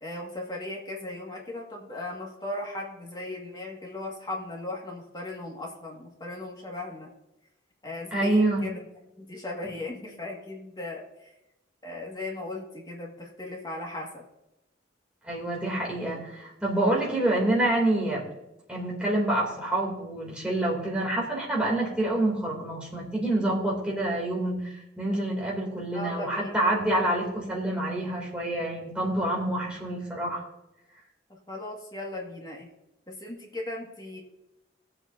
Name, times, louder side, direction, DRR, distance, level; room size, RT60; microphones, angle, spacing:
voice 1, 0.0-7.1 7.8-8.8 9.2-11.3 11.8-14.2 25.9-26.6 31.3-32.7 33.1-34.2, left 2 dB, 20° left, -1 dB, 1.9 m, -37 dB
voice 2, 8.1-8.6 15.2-18.2 18.7-30.4, right 1 dB, 5° right, -3 dB, 2.9 m, -27 dB
19.5 x 7.9 x 2.7 m, 0.91 s
head